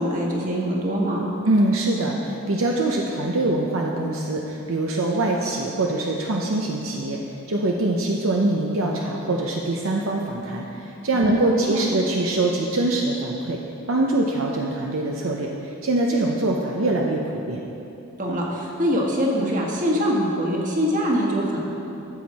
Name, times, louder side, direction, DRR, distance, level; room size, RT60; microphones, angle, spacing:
voice 1, 0.0-1.3 11.1-11.8 18.2-21.6, equal, 35° right, -2 dB, 1.5 m, -24 dB
voice 2, 1.4-7.2 7.5-13.6 13.9-17.6, right 2 dB, 65° right, 0 dB, 0.7 m, -23 dB
13.0 x 7.9 x 4.2 m, 2.9 s
head